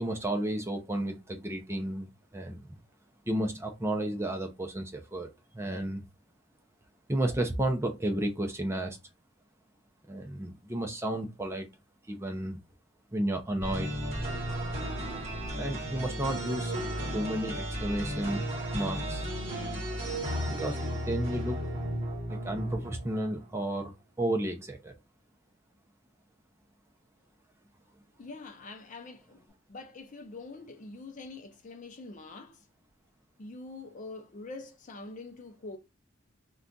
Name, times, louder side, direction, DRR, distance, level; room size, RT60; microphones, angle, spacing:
voice 1, 0.0-2.8 3.3-6.0 7.1-9.0 10.1-11.7 12.1-12.6 13.1-14.0 15.6-16.7 17.1-18.5 18.7-19.3 20.5-21.7 22.3-25.0, right 1 dB, 15° right, 0.5 m, -32 dB
sound 1, 13.6-23.4, equal, 30° right, 1.2 m, -34 dB
voice 2, 28.2-32.6 33.4-35.8, left 3 dB, 40° left, 0.4 m, -45 dB
2.4 x 2.3 x 3.7 m
head